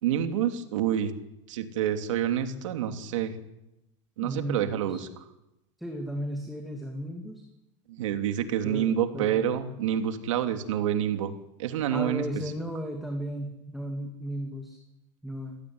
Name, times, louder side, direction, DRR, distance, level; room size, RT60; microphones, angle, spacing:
voice 1, 0.0-1.1 1.5-3.3 4.2-5.2 7.9-11.3 11.6-12.2, right 10 dB, 85° right, 7 dB, 3.0 m, -28 dB
voice 2, 4.2-5.0 5.8-7.4 8.6-9.4 11.9-14.8 15.2-15.6, equal, ahead, 2 dB, 2.6 m, -35 dB
27.0 x 17.0 x 9.7 m, 0.90 s
supercardioid pair, 160°, 16 cm